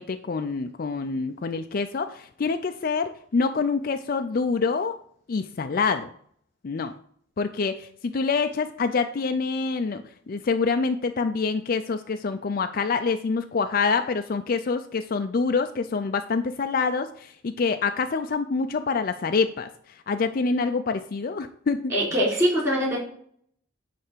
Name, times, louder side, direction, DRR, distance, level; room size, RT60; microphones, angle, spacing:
voice 1, 0.0-5.0 5.3-6.1 6.6-6.9 7.4-21.9, left 4 dB, 45° left, 8 dB, 0.4 m, -26 dB
voice 2, 21.9-23.0, equal, 15° right, -5 dB, 3.7 m, -22 dB
9.9 x 3.4 x 6.7 m, 0.62 s
head